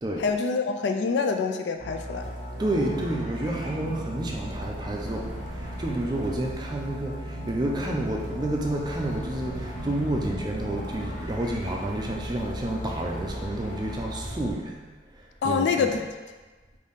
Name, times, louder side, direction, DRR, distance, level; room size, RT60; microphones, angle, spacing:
voice 1, 0.2-2.3 15.4-16.0, left 5 dB, 80° left, 5 dB, 0.3 m, -26 dB
sound 1, 1.8-14.5, equal, 40° left, 1.3 m, -36 dB
Thunderstorm / Rain, 2.1-14.4, right 1 dB, 80° right, 0.5 m, -43 dB
voice 2, 2.6-14.8 15.1-15.9, right 1 dB, 25° right, 0 dB, 0.4 m, -30 dB
3.9 x 2.6 x 3.5 m, 1.3 s
head